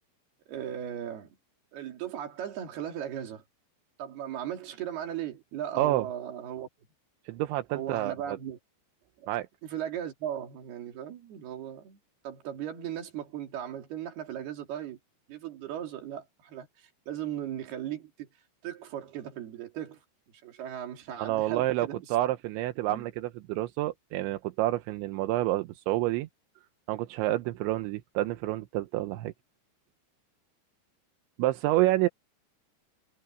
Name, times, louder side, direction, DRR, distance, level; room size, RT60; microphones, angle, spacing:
voice 1, 0.5-1.3 1.7-3.4 4.0-6.7 7.7-8.6 9.2-9.3 9.6-12.0 12.2-15.0 15.3-16.7 17.1-18.3 18.6-20.0 20.4-22.0 22.9-23.0, right 10 dB, 60° right, 4.4 m, -37 dB
voice 2, 7.3-8.4 9.3-9.5 21.2-26.3 26.9-29.3 31.4-32.1, right 16 dB, 85° right, 3.2 m, -28 dB
omnidirectional pair, 5.3 m